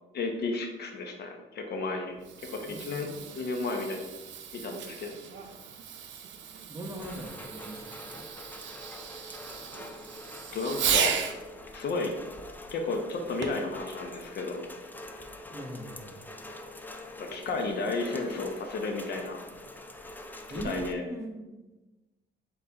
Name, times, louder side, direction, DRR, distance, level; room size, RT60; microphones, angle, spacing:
voice 1, 0.1-2.2 2.5-3.1 3.3-4.0 4.5-5.1 10.5-11.1 11.7-12.1 12.7-14.6 17.2-19.4 20.5-21.0, left 3 dB, 55° left, 3 dB, 0.7 m, -33 dB
Fireworks, 2.1-11.4 13.4-13.7 14.4-14.5, right 8 dB, 70° right, 0.5 m, -35 dB
voice 2, 2.5-3.4 6.7-8.2 15.5-16.2 20.5-21.7, right 1 dB, 15° right, 0 dB, 0.8 m, -41 dB
Rain, 7.0-20.9, left 1 dB, 10° left, 0.4 m, -45 dB
4.0 x 3.9 x 2.8 m, 1.1 s
cardioid pair, 90°, 20 cm